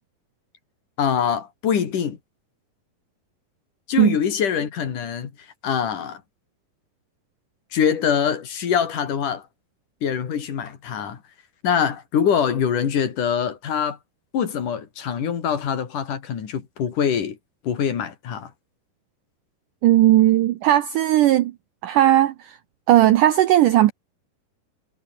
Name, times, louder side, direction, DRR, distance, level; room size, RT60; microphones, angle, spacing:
voice 1, 1.0-2.2 3.9-5.3 5.6-6.2 7.7-9.4 10.0-11.2 11.6-14.0 14.3-17.4 17.6-18.5, left 8 dB, 60° left, 4.2 m, -24 dB
voice 2, 19.8-21.5 21.8-22.5 22.9-23.9, right 13 dB, 70° right, 2.2 m, -16 dB
omnidirectional pair, 4.4 m